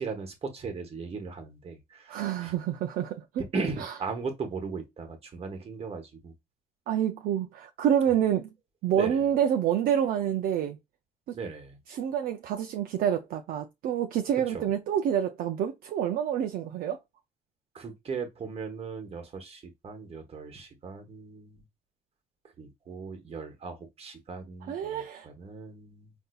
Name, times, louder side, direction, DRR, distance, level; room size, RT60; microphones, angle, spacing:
voice 1, 0.0-2.5 3.5-6.3 8.9-9.2 11.3-11.8 14.5-14.7 17.7-21.6 22.6-26.1, right 4 dB, 40° right, 1.1 m, -37 dB
voice 2, 2.1-3.4 3.8-3.9 6.9-8.5 8.8-10.8 11.9-17.0 24.7-25.3, right 9 dB, 75° right, 0.4 m, -27 dB
3.9 x 2.7 x 2.3 m
cardioid pair, 90°, 15 cm